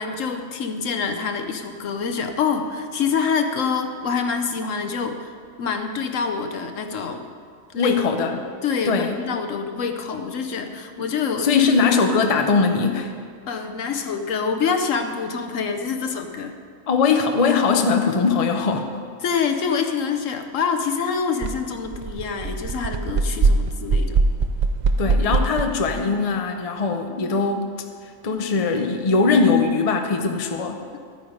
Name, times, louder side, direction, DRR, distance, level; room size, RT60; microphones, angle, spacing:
voice 1, 0.0-5.3 5.6-7.3 7.7-8.0 8.3-11.6 13.5-16.5 19.2-24.2, left 5 dB, 65° left, 6 dB, 1.1 m, -26 dB
voice 2, 7.7-8.4 8.9-9.2 11.0-11.1 11.4-13.1 16.9-18.9 25.0-27.7 28.2-30.8, left 4 dB, 35° left, 4 dB, 0.7 m, -20 dB
sound 1, 21.4-21.5 21.9-26.0, right 3 dB, 90° right, 0.3 m, -21 dB
13.0 x 9.3 x 5.1 m, 2.1 s
omnidirectional pair, 1.5 m